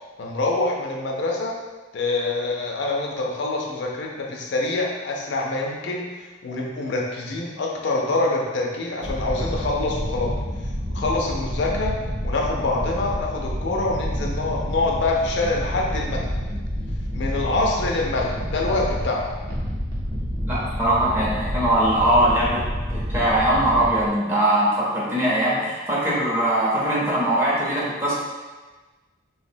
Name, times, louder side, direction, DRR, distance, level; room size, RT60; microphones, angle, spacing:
voice 1, 0.2-1.5 1.9-6.0 6.4-10.3 10.9-11.9 12.2-16.3 17.1-19.3, left 2 dB, 60° left, -1 dB, 0.4 m, -25 dB
sound 1, 9.0-24.1, equal, 50° right, 0.6 m, -29 dB
voice 2, 20.4-22.6 22.9-28.1, right 1 dB, 10° right, -8 dB, 0.6 m, -21 dB
3.3 x 2.0 x 2.5 m, 1.3 s
head